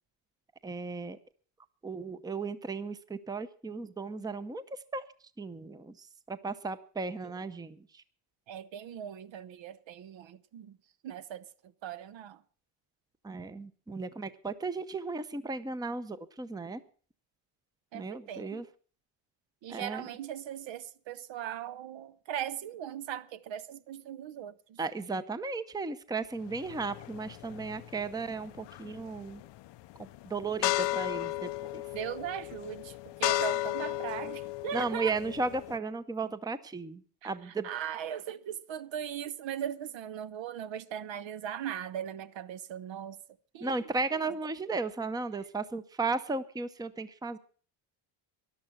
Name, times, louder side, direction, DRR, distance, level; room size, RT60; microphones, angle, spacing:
voice 1, 0.6-1.2 1.8-4.6 4.9-5.0 5.4-8.0 13.2-16.8 17.9-18.6 19.7-20.0 24.8-29.4 30.3-31.8 34.7-37.7 43.6-47.4, right 3 dB, 10° right, 0.7 m, -35 dB
voice 2, 8.5-10.8 11.0-11.5 11.8-12.4 17.9-18.6 19.6-24.8 31.9-35.1 37.2-43.2 43.5-43.8 44.1-44.3, right 10 dB, 60° right, 0.9 m, -39 dB
sound 1, 26.5-35.8, left 16 dB, 60° left, 0.5 m, -35 dB
13.5 x 11.5 x 5.9 m
cardioid pair, 110°, 50 cm